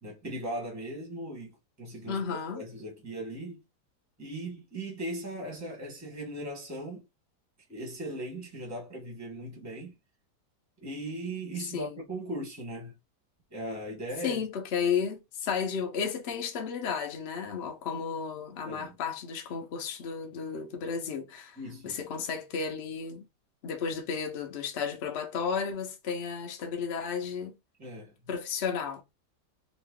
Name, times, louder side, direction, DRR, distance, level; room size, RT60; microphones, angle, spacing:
voice 1, 0.0-2.2 2.5-3.6 4.2-7.0 7.7-9.9 10.8-13.0 13.5-14.4 18.7-19.0 21.6-22.0 27.8-28.1, right 1 dB, 10° right, 0.9 m, -38 dB
voice 2, 2.1-2.6 11.7-12.0 14.2-21.6 21.8-23.3 23.6-27.5 28.3-29.0, left 6 dB, 50° left, 0.7 m, -33 dB
3.0 x 2.5 x 3.6 m
omnidirectional pair, 1.8 m